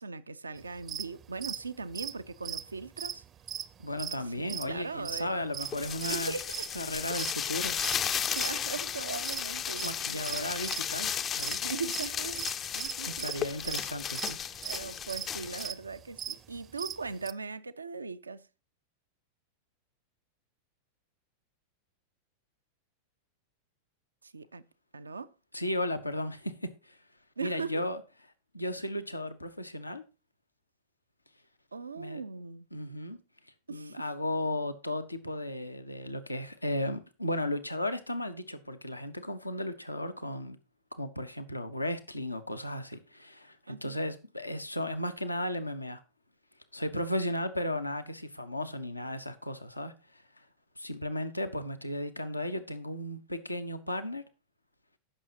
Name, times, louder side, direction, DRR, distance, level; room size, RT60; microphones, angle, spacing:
voice 1, 0.0-3.2 4.4-5.3 6.0-6.7 8.3-10.5 11.6-12.5 12.7-13.3 14.6-18.5 24.2-24.6 24.9-25.3 27.4-27.8 31.7-32.7 33.7-34.1 43.7-44.0, right 4 dB, 80° right, 0.4 m, -39 dB
sound 1, 0.8-1.1 1.4-1.6 1.9-3.7 4.0-4.2 4.5-4.8 5.1-5.7 6.0-6.2 6.5-7.3 7.8-8.6 8.9-11.0 11.3-11.6 11.8-17.3, right 10 dB, 25° right, 0.5 m, -38 dB
voice 2, 3.8-6.3 6.7-7.8 9.8-11.6 13.0-14.4 25.5-27.0 27.4-28.0 28.5-30.0 32.0-32.2 32.7-33.2 33.4-40.6 40.9-46.0 46.7-50.5 50.8-54.2, left 1 dB, 85° left, 0.8 m, -35 dB
sound 2, 5.6-15.7, left 8 dB, 25° left, 0.5 m, -34 dB
15.5 x 6.2 x 2.8 m
figure-of-eight pair, 90°, 0 cm